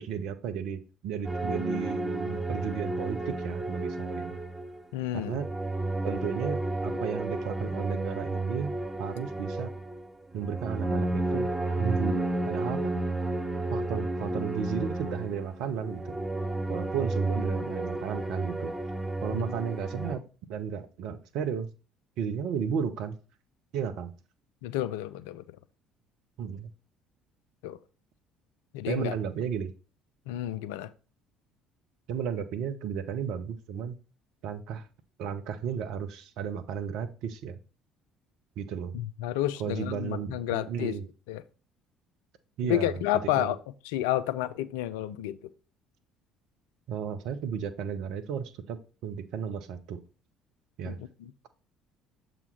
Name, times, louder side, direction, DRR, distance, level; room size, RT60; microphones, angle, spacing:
voice 1, 0.0-4.4 5.1-5.5 6.0-8.7 9.0-9.7 10.3-11.5 11.8-13.0 13.7-16.2 16.7-18.7 19.2-20.2 20.5-21.7 22.2-23.2 23.7-24.1 26.4-26.7 28.9-29.7 32.1-34.0 34.4-34.9 35.2-37.6 38.6-38.9 39.6-41.0 42.6-43.0 43.4-43.5 46.9-50.0 50.8-51.0, right 7 dB, 60° right, 0.7 m, -34 dB
sound 1, 1.2-4.8 5.1-20.1, right 2 dB, 10° right, 2.6 m, -32 dB
voice 2, 4.9-5.4 19.3-19.5 24.6-25.4 27.6-27.8 28.7-29.1 30.3-30.9 38.9-41.0 41.3-41.4 42.6-43.6 43.9-45.4 50.9-51.3, left 13 dB, 70° left, 0.4 m, -30 dB
7.0 x 3.1 x 5.6 m
figure-of-eight pair, 55°, 0 cm